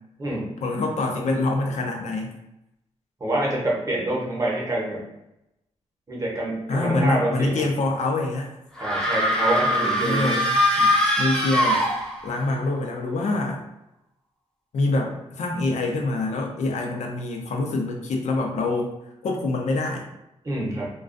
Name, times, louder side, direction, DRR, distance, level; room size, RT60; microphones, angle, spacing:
voice 1, 0.6-2.3 6.7-8.5 10.0-11.8 12.2-13.6 14.7-18.9 19.2-20.0, left 2 dB, 80° left, 1 dB, 0.5 m, -25 dB
voice 2, 3.2-5.0 6.1-7.6 8.8-10.4 20.4-20.9, right 1 dB, 30° right, -4 dB, 0.7 m, -26 dB
sound 1, 8.8-12.4, equal, 5° left, 0.5 m, -22 dB
2.3 x 2.2 x 2.4 m, 0.88 s
wide cardioid pair, 125°, 12 cm